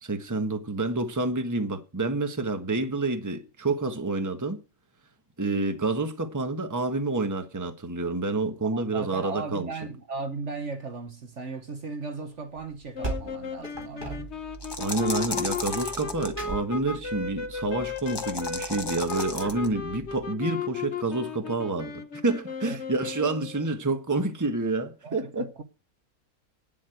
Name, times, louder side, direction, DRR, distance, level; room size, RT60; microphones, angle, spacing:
voice 1, 0.0-4.6 5.4-9.7 14.8-25.5, right 2 dB, 15° right, 1.2 m, -28 dB
voice 2, 8.6-14.3 22.6-22.8 25.0-25.6, right 4 dB, 50° right, 1.3 m, -37 dB
sound 1, 12.5-20.2, right 3 dB, 30° right, 3.4 m, -40 dB
sound 2, 12.9-23.7, left 5 dB, 50° left, 1.2 m, -35 dB
sound 3, 14.5-16.3 18.0-19.7, left 2 dB, 15° left, 1.1 m, -34 dB
9.7 x 7.5 x 8.0 m
omnidirectional pair, 1.6 m